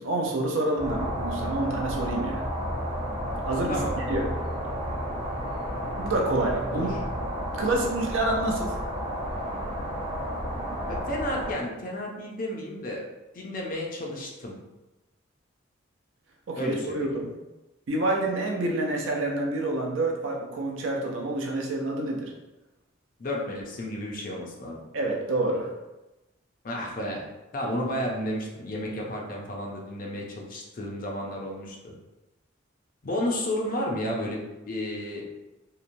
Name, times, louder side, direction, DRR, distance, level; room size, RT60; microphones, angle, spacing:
voice 1, 0.0-2.5 3.5-4.3 5.9-6.9 7.6-8.8 16.5-17.3 17.9-22.3 24.9-25.7, right 2 dB, 75° right, 0 dB, 0.5 m, -28 dB
sound 1, 0.8-11.5, equal, 30° right, 0.7 m, -31 dB
voice 2, 6.7-7.0 10.8-13.0 13.3-14.5 16.6-17.1 23.2-24.8 26.6-27.3 27.5-31.9 33.0-34.4 34.7-35.3, left 1 dB, 45° left, -1 dB, 0.5 m, -32 dB
2.9 x 2.1 x 2.6 m, 1.0 s
head